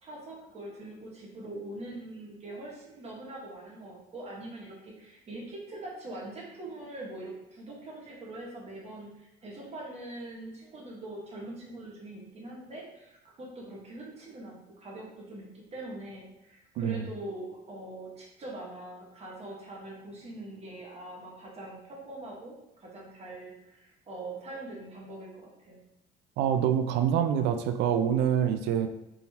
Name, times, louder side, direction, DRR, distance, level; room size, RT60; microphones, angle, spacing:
voice 1, 0.0-25.8, right 2 dB, 40° right, -2 dB, 1.4 m, -43 dB
voice 2, 16.8-17.1 26.4-28.9, right 9 dB, 85° right, 8 dB, 0.4 m, -26 dB
4.0 x 3.8 x 2.9 m, 0.89 s
cardioid pair, 110°, 17 cm